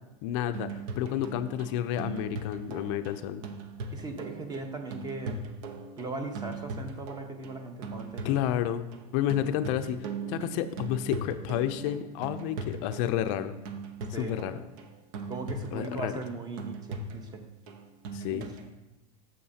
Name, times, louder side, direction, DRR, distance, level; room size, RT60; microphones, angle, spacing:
voice 1, 0.2-3.5 8.2-8.9 9.1-13.6 14.1-14.6 15.7-16.1 18.1-18.5, left 11 dB, 55° left, 10 dB, 0.5 m, -30 dB
sound 1, 0.5-18.7, right 3 dB, 65° right, 1.0 m, -40 dB
voice 2, 3.9-5.4 6.0-8.4 14.1-14.3 15.3-17.4 18.3-18.4, right 3 dB, 20° right, 5 dB, 1.0 m, -38 dB
8.6 x 7.1 x 2.8 m, 1.0 s
supercardioid pair, 125°, 19 cm